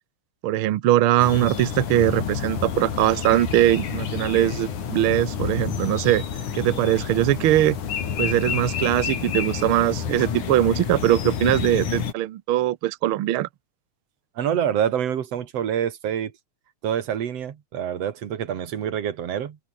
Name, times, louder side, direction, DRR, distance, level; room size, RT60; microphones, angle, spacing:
voice 1, 0.4-6.2 6.5-7.8 8.2-13.5, right 14 dB, 75° right, 1.2 m, -21 dB
sound 1, 1.2-12.1, left 7 dB, 80° left, 4.3 m, -29 dB
voice 2, 14.4-16.3 16.8-19.6, right 9 dB, 60° right, 2.7 m, -26 dB
omnidirectional pair, 3.4 m